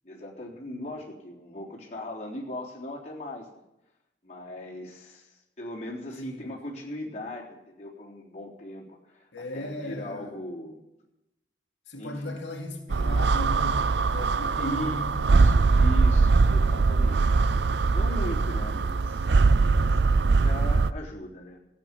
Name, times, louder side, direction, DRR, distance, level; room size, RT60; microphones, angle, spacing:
voice 1, 0.0-3.6 4.2-10.8 12.0-12.4 14.3-14.9 15.3-17.5 17.9-19.3 19.7-20.0 20.4-21.6, left 1 dB, 40° left, 3.8 m, -39 dB
voice 2, 6.2-6.5 9.3-10.3 11.9-15.9, left 1 dB, 85° left, 2.4 m, -37 dB
sound 1, 12.9-20.9, right 4 dB, 75° right, 0.5 m, -22 dB
15.5 x 8.1 x 9.6 m
head